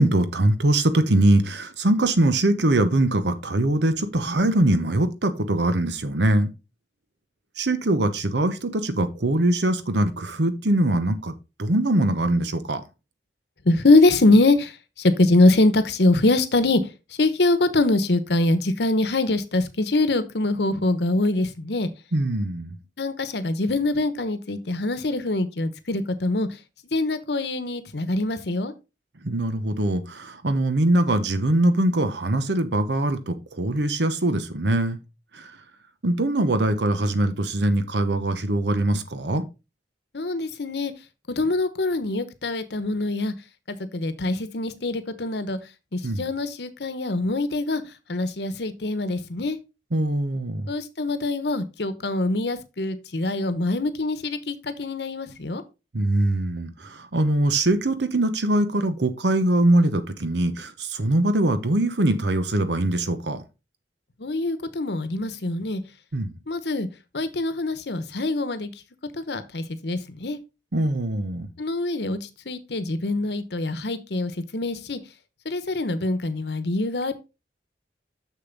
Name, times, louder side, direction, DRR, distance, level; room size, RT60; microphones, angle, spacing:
voice 1, 0.0-6.5 7.6-11.3 11.6-12.8 22.1-22.7 29.2-35.0 35.3-35.5 36.0-39.4 46.0-46.2 49.9-50.7 55.9-63.4 66.1-66.3 70.7-71.5, right 1 dB, 75° right, 1.0 m, -22 dB
voice 2, 13.6-16.9 17.2-21.9 23.0-26.6 26.9-28.7 40.1-40.9 41.3-43.3 43.7-45.6 45.9-47.8 48.1-49.6 50.7-55.6 64.2-65.8 66.5-66.9 67.1-68.7 69.1-70.4 71.6-75.0 75.4-77.1, left 2 dB, 65° left, 1.0 m, -23 dB
6.8 x 6.6 x 3.9 m
head